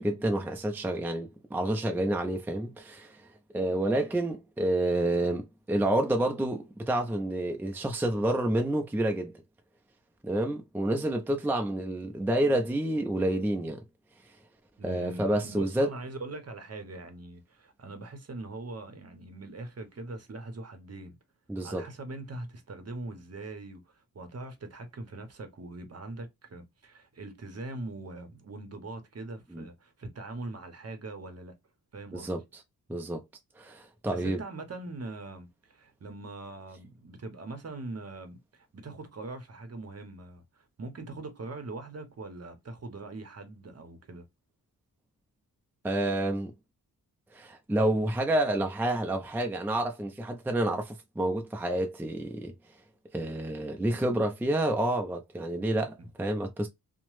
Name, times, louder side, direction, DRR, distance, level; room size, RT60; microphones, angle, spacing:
voice 1, 0.0-3.2 3.5-9.3 10.2-13.8 14.8-15.9 21.5-21.8 29.5-29.7 32.1-32.4 32.9-33.2 33.6-34.4 45.8-46.5 47.3-52.5 53.1-56.7, right 1 dB, 5° right, 0.5 m, -29 dB
voice 2, 14.8-21.2 21.6-31.6 31.9-32.3 34.1-44.3 56.0-56.1, right 2 dB, 40° right, 0.8 m, -42 dB
2.9 x 2.1 x 3.1 m
cardioid pair, 80°, 37 cm